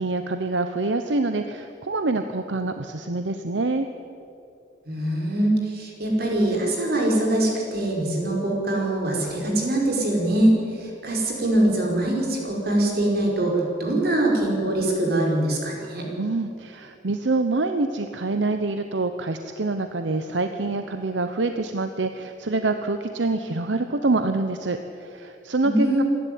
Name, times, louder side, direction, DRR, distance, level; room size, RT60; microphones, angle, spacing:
voice 1, 0.0-3.9 16.2-26.0, right 3 dB, 85° right, 8 dB, 0.9 m, -26 dB
voice 2, 4.9-16.0 25.6-26.0, right 1 dB, 60° right, -1 dB, 5.1 m, -23 dB
27.0 x 11.5 x 9.4 m, 2.6 s
head